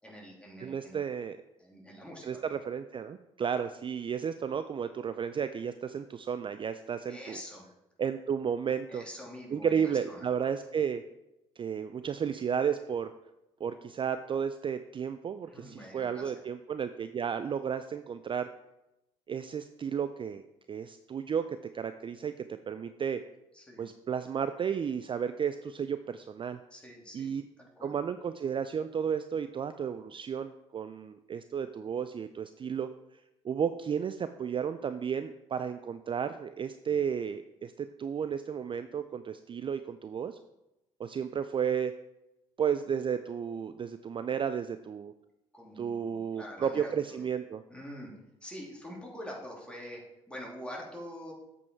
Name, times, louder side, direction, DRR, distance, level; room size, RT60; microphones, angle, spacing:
voice 1, 0.0-1.0 1.6-2.5 7.1-7.7 8.9-10.3 15.5-16.3 23.5-23.9 26.7-27.9 45.5-47.2 47.7-48.1 48.4-50.0 50.3-51.3, equal, 5° left, -2 dB, 3.1 m, -45 dB
voice 2, 0.6-1.4 2.2-7.4 8.0-9.0 9.5-11.0 11.6-13.1 13.6-18.5 19.3-20.4 20.7-23.2 23.8-26.6 27.1-27.4 27.8-32.9 33.4-40.4 41.0-41.9 42.6-45.1 45.8-47.6, right 7 dB, 35° right, 11 dB, 0.4 m, -33 dB
8.1 x 5.4 x 4.6 m, 0.91 s
hypercardioid pair, 55°, 16 cm